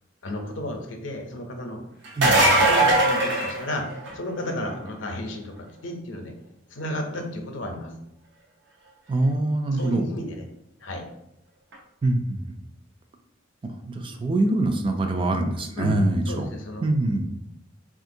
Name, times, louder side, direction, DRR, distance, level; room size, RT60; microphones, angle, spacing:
voice 1, 0.2-1.8 2.7-3.9 4.1-6.3 6.7-7.9 9.7-10.5 10.8-11.0 15.8-15.9 16.3-16.8, left 1 dB, 75° left, 3 dB, 0.6 m, -33 dB
sound 1, 2.0-4.3 9.8-9.9 11.7-11.8, right 1 dB, 65° right, 0.6 m, -20 dB
voice 2, 2.2-2.5 9.1-10.1 12.0-12.5 13.6-16.5 16.8-17.3, right 2 dB, 25° right, 5 dB, 0.3 m, -24 dB
3.5 x 2.4 x 2.6 m, 0.80 s
head